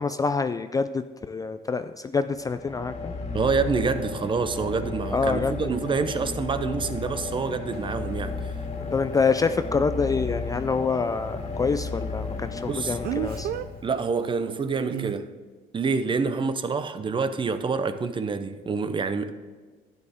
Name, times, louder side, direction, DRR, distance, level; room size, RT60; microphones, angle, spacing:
voice 1, 0.0-3.1 5.1-5.5 8.9-13.5, left 4 dB, 20° left, 0.3 m, -26 dB
sound 1, 2.3-14.2, left 3 dB, 40° left, 1.9 m, -34 dB
voice 2, 3.3-8.5 12.7-13.0 13.8-15.3 15.7-19.3, right 5 dB, 30° right, 0.7 m, -27 dB
Speech, 7.7-7.8 13.0-13.7 14.9-15.2, right 13 dB, 65° right, 0.4 m, -30 dB
12.0 x 9.8 x 3.5 m
cardioid pair, 110°, 17 cm